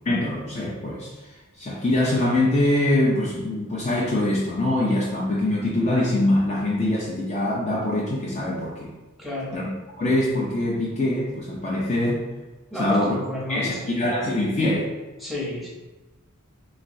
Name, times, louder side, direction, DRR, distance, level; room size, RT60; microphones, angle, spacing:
voice 1, 0.1-1.1 1.6-8.9 9.5-9.7 10.0-12.2 12.8-13.1 13.5-14.9, left 1 dB, 30° left, -4 dB, 0.5 m, -23 dB
voice 2, 9.2-9.6 12.7-14.1 15.2-15.7, left 1 dB, ahead, -5 dB, 0.7 m, -31 dB
3.2 x 3.0 x 2.6 m, 1.1 s
head